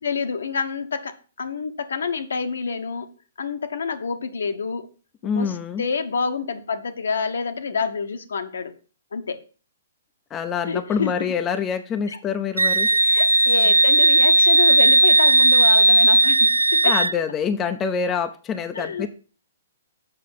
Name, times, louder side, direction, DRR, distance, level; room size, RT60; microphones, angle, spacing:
voice 1, 0.0-3.1 3.4-4.9 5.2-8.8 9.1-9.4 10.6-11.3 12.1-12.2 12.9-17.0 18.7-19.1, left 5 dB, 70° left, 1.1 m, -28 dB
voice 2, 5.2-5.8 10.3-12.9 16.8-19.1, left 6 dB, 20° left, 0.7 m, -26 dB
Wind instrument woodwind instrument, 12.6-17.1, right 2 dB, 85° right, 0.3 m, -16 dB
7.5 x 5.6 x 5.7 m
figure-of-eight pair, 120°, 0 cm